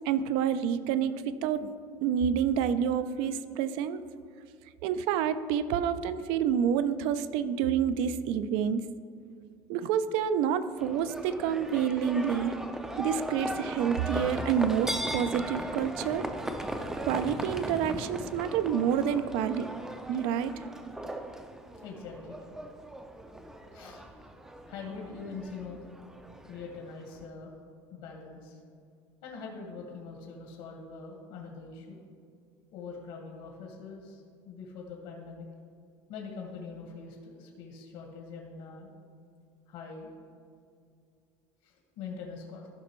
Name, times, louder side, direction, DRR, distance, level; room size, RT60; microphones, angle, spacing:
voice 1, 0.1-1.7 2.0-4.0 4.8-8.8 9.7-12.5 13.0-16.3 17.0-19.7 20.1-20.5, right 8 dB, 70° right, 13 dB, 0.4 m, -28 dB
Livestock farm animals working animals, 10.8-27.3, right 1 dB, 5° right, 0.4 m, -38 dB
voice 2, 21.8-22.4 23.7-24.0 24.7-25.9 26.5-27.5 27.9-28.6 29.2-32.0 32.7-35.5 36.1-39.0 39.7-40.1 41.6-42.7, left 4 dB, 80° left, 0 dB, 1.5 m, -43 dB
14.5 x 6.0 x 3.1 m, 2.3 s
cardioid pair, 175°, 10 cm